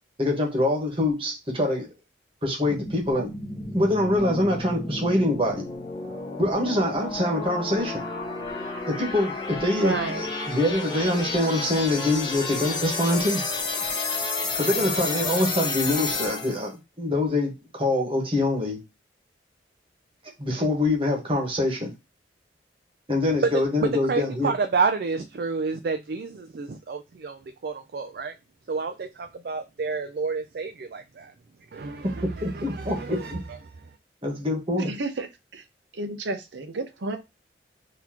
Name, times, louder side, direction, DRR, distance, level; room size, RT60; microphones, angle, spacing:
voice 1, 0.2-1.9 2.4-3.3 3.7-5.6 6.4-8.0 8.9-13.4 14.6-18.8 20.4-21.9 23.1-24.5 32.0-33.4 34.2-34.9, left 1 dB, 30° right, 1.3 m, -25 dB
sound 1, 2.6-16.7, left 3 dB, 25° left, 0.9 m, -31 dB
voice 2, 9.8-10.2 14.8-15.5 34.8-35.6 35.9-37.2, right 2 dB, 85° right, 0.7 m, -32 dB
voice 3, 23.8-28.3 28.7-31.3 31.7-33.9, right 4 dB, 55° right, 0.4 m, -29 dB
4.0 x 2.9 x 2.9 m
head